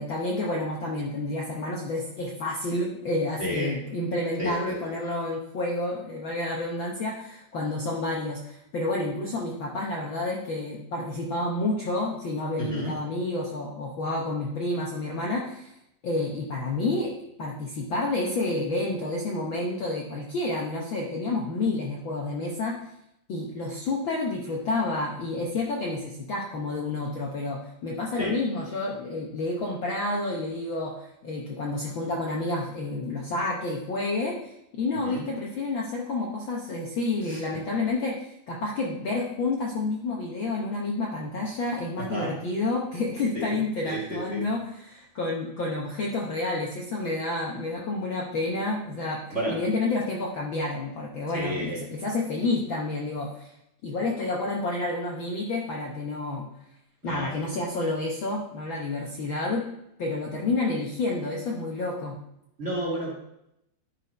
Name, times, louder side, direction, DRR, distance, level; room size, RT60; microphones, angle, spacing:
voice 1, 0.0-15.7 16.0-17.1 17.4-22.8 23.3-49.2 49.5-53.5 53.8-56.5 57.0-59.7 60.0-62.2, left 2 dB, 90° left, -2 dB, 1.0 m, -29 dB
voice 2, 3.4-3.7 4.4-4.5 12.6-12.9 28.2-28.4 35.0-35.2 37.3-37.4 42.0-42.3 43.3-43.6 43.8-44.4 49.3-49.5 51.3-51.8 57.0-57.3 62.6-63.1, equal, 30° right, -3 dB, 1.5 m, -31 dB
11.0 x 4.2 x 5.1 m, 0.81 s
omnidirectional pair, 3.7 m